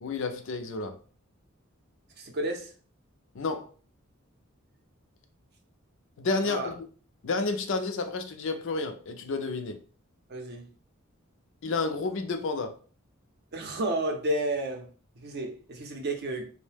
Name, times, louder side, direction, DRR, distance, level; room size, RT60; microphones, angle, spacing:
voice 1, 0.0-1.0 3.3-3.7 6.2-6.8 7.2-9.8 11.6-12.8, left 3 dB, 65° left, 0.4 m, -30 dB
voice 2, 2.2-2.7 6.4-6.7 10.3-10.7 13.5-14.9 15.2-16.5, right 1 dB, 50° right, 0.6 m, -31 dB
2.7 x 2.1 x 3.3 m
head